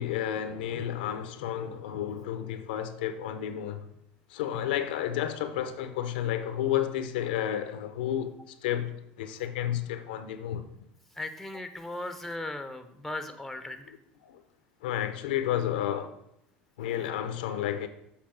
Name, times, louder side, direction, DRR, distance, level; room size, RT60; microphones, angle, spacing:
voice 1, 0.0-3.8 4.3-8.3 8.6-10.7 14.2-14.4 14.8-16.1 16.8-17.9, left 11 dB, 90° left, 0.7 m, -31 dB
voice 2, 11.2-13.9, left 2 dB, 5° left, 0.8 m, -37 dB
7.4 x 4.2 x 5.8 m
supercardioid pair, 100°, 5 cm